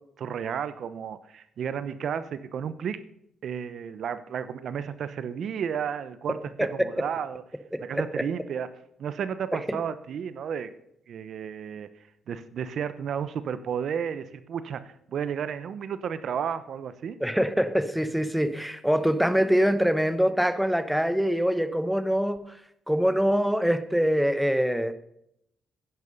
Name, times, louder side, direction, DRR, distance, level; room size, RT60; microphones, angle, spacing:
voice 1, 0.2-3.0 3.4-7.4 7.8-8.7 9.0-10.7 11.1-11.9 12.3-17.2, right 7 dB, 60° right, 13 dB, 0.9 m, -32 dB
voice 2, 6.6-7.0 7.7-8.3 9.5-9.8 17.2-22.6 22.9-24.9, equal, ahead, 11 dB, 0.9 m, -24 dB
11.0 x 9.6 x 5.4 m, 0.75 s
cardioid pair, 90°, 0 cm